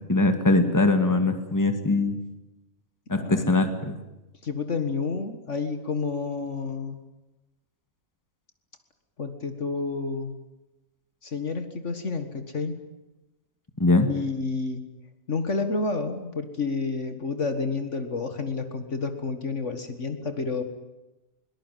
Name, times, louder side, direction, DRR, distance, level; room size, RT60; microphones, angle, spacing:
voice 1, 0.1-2.2 3.1-4.0 13.8-14.1, left 2 dB, 10° left, 8 dB, 2.0 m, -22 dB
voice 2, 3.1-3.5 4.4-7.1 9.2-10.4 11.2-12.8 14.1-14.8 15.3-20.6, left 4 dB, 55° left, 8 dB, 2.0 m, -30 dB
22.0 x 20.5 x 9.2 m, 1.0 s
omnidirectional pair, 1.5 m